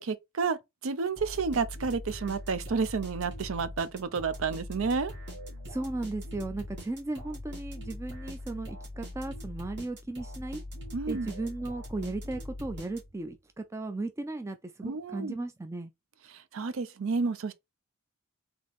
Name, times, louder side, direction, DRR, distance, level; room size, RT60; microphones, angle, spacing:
voice 1, 0.0-5.1 10.9-11.3 14.8-15.4 16.3-17.5, right 4 dB, 70° right, 0.5 m, -31 dB
sound 1, 1.2-13.4, left 1 dB, 50° right, 2.0 m, -42 dB
voice 2, 5.7-10.6 11.1-15.9, right 2 dB, 15° right, 0.3 m, -36 dB
3.9 x 2.8 x 3.5 m
head